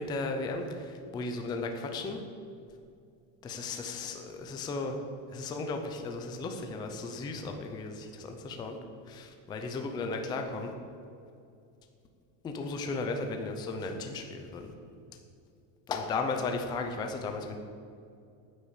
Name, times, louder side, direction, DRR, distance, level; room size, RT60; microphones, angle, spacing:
voice 1, 0.0-2.2 3.4-5.0 5.3-8.8 9.1-10.7 12.4-14.7 15.9-17.6, left 3 dB, 10° left, 4 dB, 0.4 m, -35 dB
9.6 x 9.2 x 8.1 m, 2.5 s
cardioid pair, 175°, 49 cm